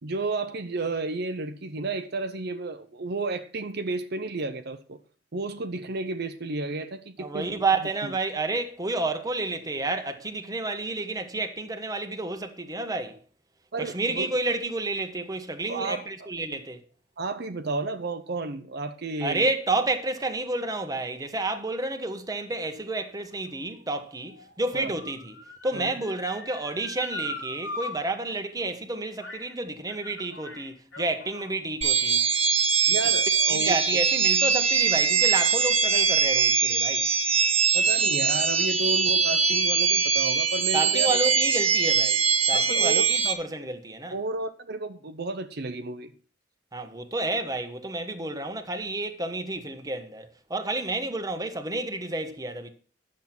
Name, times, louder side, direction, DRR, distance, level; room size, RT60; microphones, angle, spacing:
voice 1, 0.0-5.0 5.3-7.6 8.0-8.1 13.7-14.3 15.7-16.3 17.2-19.5 24.7-25.0 25.7-25.9 32.9-33.7 37.7-41.2 42.5-43.1 44.1-46.1, right 3 dB, 60° right, 0.8 m, -32 dB
voice 2, 7.2-13.2 13.8-16.8 19.2-25.4 25.6-32.3 33.5-37.1 40.7-44.2 46.7-52.7, right 2 dB, 20° right, 1.3 m, -30 dB
Motor vehicle (road) / Siren, 22.7-27.9 28.3-28.4 29.2-29.5 29.9-31.6 32.3-32.4, left 2 dB, 85° left, 3.5 m, -41 dB
sound 1, 31.8-43.3, right 5 dB, 35° right, 1.7 m, -22 dB
10.5 x 7.5 x 6.0 m
head